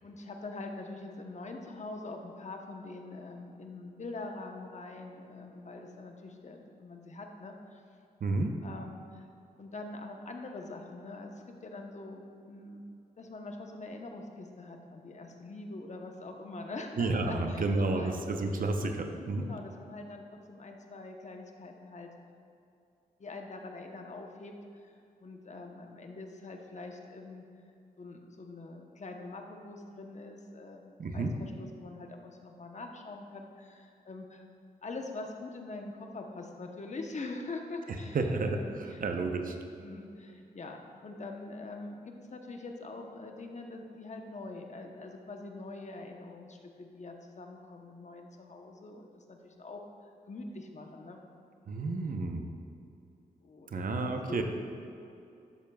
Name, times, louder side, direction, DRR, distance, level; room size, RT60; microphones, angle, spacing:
voice 1, 0.0-7.8 8.6-9.3 9.6-12.8 13.2-18.4 19.1-22.1 23.2-24.5 24.8-24.9 25.2-27.4 28.0-34.4 34.8-38.2 38.5-39.0 39.8-49.8 50.3-51.2 53.4-54.4, left 2 dB, 45° left, 3 dB, 0.9 m, -44 dB
voice 2, 8.2-8.5 17.0-19.4 31.0-31.3 38.1-39.5 51.7-52.4 53.7-54.4, right 3 dB, 60° right, 4 dB, 0.8 m, -31 dB
12.0 x 7.3 x 2.3 m, 2.6 s
cardioid pair, 75°, 16 cm